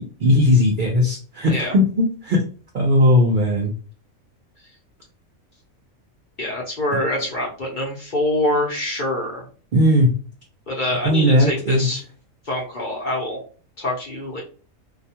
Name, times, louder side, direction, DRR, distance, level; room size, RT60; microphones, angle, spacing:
voice 1, 0.2-2.4 2.7-3.7 9.7-10.2 11.0-11.9, left 1 dB, 65° right, 0 dB, 0.5 m, -17 dB
voice 2, 6.4-9.4 10.7-12.0 12.5-13.4 13.8-14.4, left 1 dB, 45° left, -2 dB, 0.7 m, -25 dB
2.4 x 2.2 x 2.7 m, 0.38 s
omnidirectional pair, 1.4 m